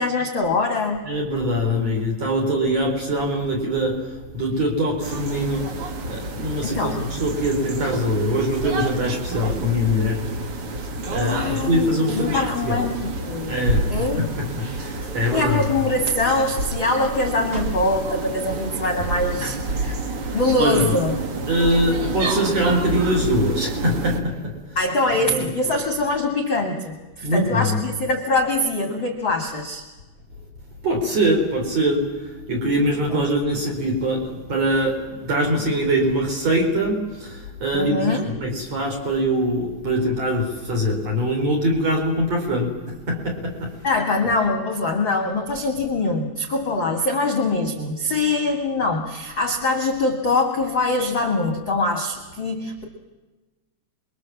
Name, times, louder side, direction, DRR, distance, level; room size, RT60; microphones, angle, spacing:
voice 1, 0.0-1.0 6.6-7.0 11.2-13.6 13.9-14.3 15.3-20.0 20.3-21.1 24.8-29.8 33.1-33.2 37.7-38.2 43.8-52.8, left 2 dB, 35° left, 4 dB, 2.0 m, -23 dB
voice 2, 1.1-5.8 6.0-10.3 11.1-12.9 13.5-15.7 19.4-19.6 20.1-21.0 21.5-24.8 25.2-25.5 27.2-27.8 30.8-43.9, equal, 35° right, 1 dB, 5.2 m, -23 dB
sound 1, 5.0-24.2, right 2 dB, 85° right, 1.2 m, -29 dB
28.5 x 23.0 x 7.4 m, 1.2 s
omnidirectional pair, 5.7 m